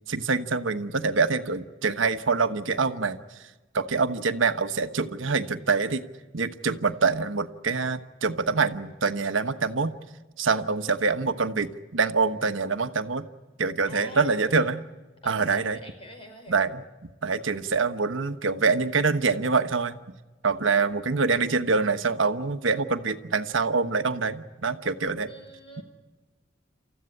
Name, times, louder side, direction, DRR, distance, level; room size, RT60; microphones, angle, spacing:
voice 1, 0.1-3.2 3.7-6.0 6.3-10.0 10.4-13.3 13.6-14.8 15.2-15.8 16.5-20.0 20.4-25.3, right 4 dB, 80° right, 9 dB, 1.2 m, -25 dB
voice 2, 13.9-14.7 15.2-16.6 25.3-25.8, equal, 30° left, 4 dB, 4.9 m, -45 dB
28.5 x 14.5 x 9.8 m, 1.2 s
head